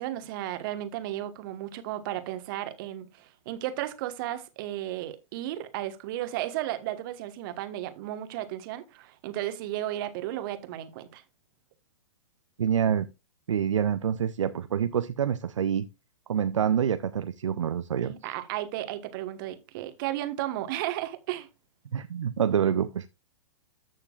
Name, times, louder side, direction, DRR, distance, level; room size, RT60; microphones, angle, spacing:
voice 1, 0.0-11.2 18.0-21.5, right 13 dB, 40° right, 1.3 m, -34 dB
voice 2, 12.6-13.1 13.5-15.9 16.3-18.1 21.9-23.1, right 8 dB, 70° right, 0.5 m, -26 dB
14.0 x 6.6 x 2.4 m
figure-of-eight pair, 110°, 16 cm